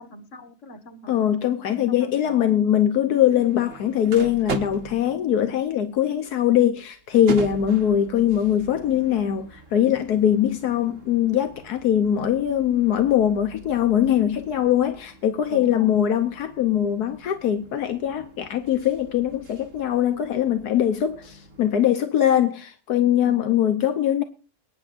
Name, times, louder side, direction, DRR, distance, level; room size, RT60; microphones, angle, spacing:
voice 1, 0.0-1.3 1.9-2.5 15.5-16.0 23.2-23.5, left 1 dB, 50° left, 2.0 m, -41 dB
voice 2, 1.1-24.2, left 10 dB, 80° left, 1.4 m, -22 dB
sound 1, 3.1-21.8, right 4 dB, 55° right, 1.8 m, -41 dB
22.0 x 9.9 x 2.6 m
omnidirectional pair, 1.6 m